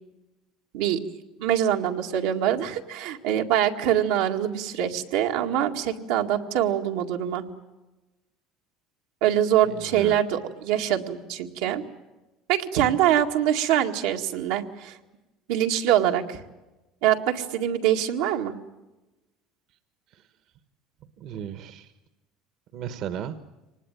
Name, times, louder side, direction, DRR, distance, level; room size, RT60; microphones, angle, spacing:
voice 1, 0.7-7.4 9.2-11.8 12.5-15.0 15.5-16.4 17.0-18.5, right 11 dB, 85° right, 2 dB, 2.0 m, -24 dB
voice 2, 9.6-10.2 20.1-20.2 21.2-21.9 22.7-23.3, right 9 dB, 55° right, 11 dB, 1.2 m, -35 dB
24.5 x 20.0 x 9.2 m, 1.1 s
cardioid pair, 135°, 0 cm